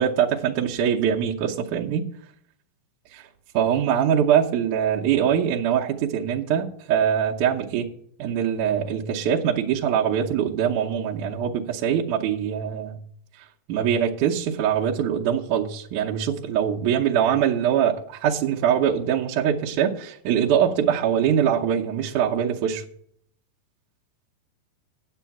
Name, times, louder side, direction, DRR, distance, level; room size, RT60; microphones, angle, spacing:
voice 1, 0.0-2.1 3.1-3.2 3.5-7.9 8.2-13.0 13.7-22.8, right 9 dB, 70° right, -3 dB, 2.1 m, -23 dB
9.2 x 8.2 x 5.8 m, 0.63 s
omnidirectional pair, 4.1 m